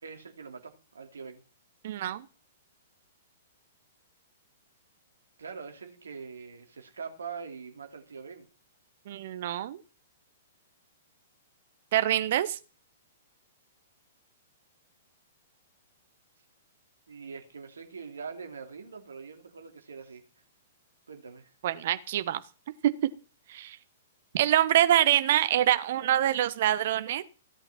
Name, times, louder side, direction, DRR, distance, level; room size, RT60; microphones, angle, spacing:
voice 1, 0.0-1.4 5.4-8.5 17.1-20.2 21.1-21.5, right 5 dB, 65° right, 5 dB, 2.8 m, -43 dB
voice 2, 1.8-2.2 9.1-9.8 11.9-12.6 21.6-22.4 22.8-22.9 23.5-23.8 24.3-27.2, right 12 dB, 50° right, 12 dB, 1.2 m, -25 dB
16.5 x 8.9 x 6.0 m, 0.35 s
figure-of-eight pair, 110°, 0 cm